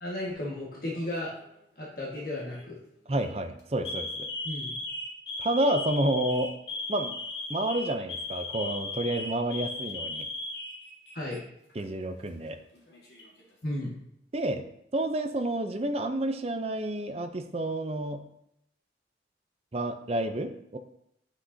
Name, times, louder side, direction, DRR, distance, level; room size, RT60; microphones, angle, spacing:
voice 1, 0.0-1.3 1.8-2.8 4.4-4.9 11.1-11.4 13.6-13.9, left 1 dB, 50° left, -6 dB, 1.7 m, -34 dB
Alarm, 0.9-1.5 2.3-2.6 3.1-3.3 3.8-11.4 11.7-11.8 12.7-13.4, left 2 dB, 70° left, 1.7 m, -37 dB
voice 2, 3.1-4.3 5.4-6.6 6.9-7.1 7.5-10.3 11.7-12.6 14.3-14.7 14.9-18.2 19.7-20.8, right 1 dB, 35° right, 7 dB, 0.6 m, -29 dB
9.8 x 6.0 x 2.7 m, 0.78 s
head